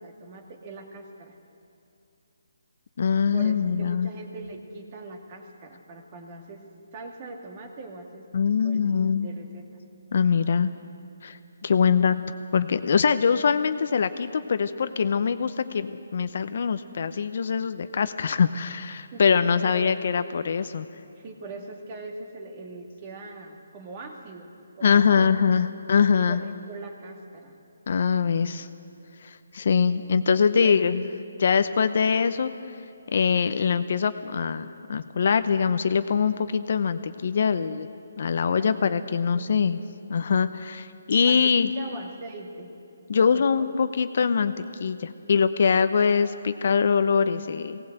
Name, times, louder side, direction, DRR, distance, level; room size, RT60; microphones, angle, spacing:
voice 1, 0.0-1.4 3.3-6.7 6.9-9.7 11.8-12.1 19.1-20.0 21.2-24.5 24.8-25.3 26.3-27.6 30.5-30.8 38.6-39.0 39.3-39.7 41.2-42.7 43.1-43.4 45.2-45.7, right 3 dB, 25° right, 3 dB, 2.0 m, -41 dB
voice 2, 3.0-4.1 8.3-9.3 10.1-10.7 11.2-12.2 12.5-20.9 24.8-26.4 27.9-28.7 29.2-31.0 31.4-32.8 33.1-37.9 38.2-39.8 40.1-41.7 43.1-44.5 44.8-47.8, left 6 dB, 50° left, 11 dB, 0.7 m, -23 dB
19.0 x 18.0 x 8.0 m, 2.7 s
hypercardioid pair, 170°, 0 cm